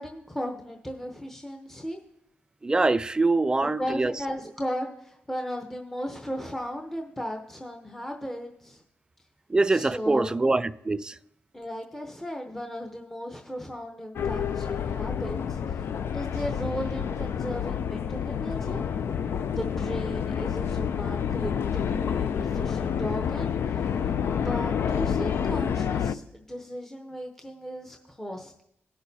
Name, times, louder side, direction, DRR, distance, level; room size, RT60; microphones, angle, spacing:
voice 1, 0.0-2.0 3.6-8.8 9.7-10.4 11.5-15.9 16.1-18.8 19.4-24.1 24.4-28.6, equal, 5° left, 0.8 m, -36 dB
voice 2, 2.6-4.1 9.5-11.2, right 3 dB, 20° right, 0.4 m, -24 dB
sound 1, 14.2-26.2, left 7 dB, 65° left, 0.4 m, -28 dB
17.5 x 6.3 x 2.8 m
cardioid pair, 95°, 4 cm